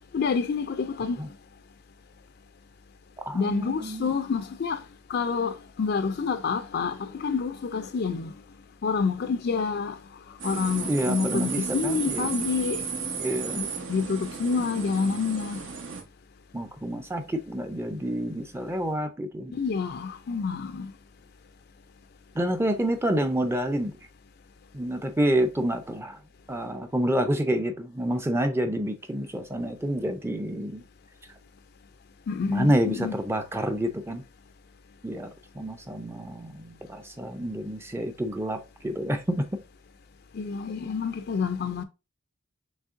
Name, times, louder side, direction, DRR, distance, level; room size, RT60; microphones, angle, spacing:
voice 1, 0.1-1.2 3.3-4.8 5.1-8.3 8.8-10.0 10.4-12.9 13.6-15.6 19.5-20.9 32.3-33.2 40.3-41.8, left 5 dB, 55° left, 0.4 m, -28 dB
voice 2, 3.2-4.2 10.9-12.3 13.2-13.6 16.5-19.5 22.4-23.9 24.7-26.2 26.5-30.8 32.5-34.2 35.0-35.3 35.6-39.5, right 1 dB, 15° right, 0.5 m, -28 dB
sound 1, 10.4-16.0, right 6 dB, 75° right, 1.0 m, -34 dB
6.4 x 3.1 x 2.5 m
head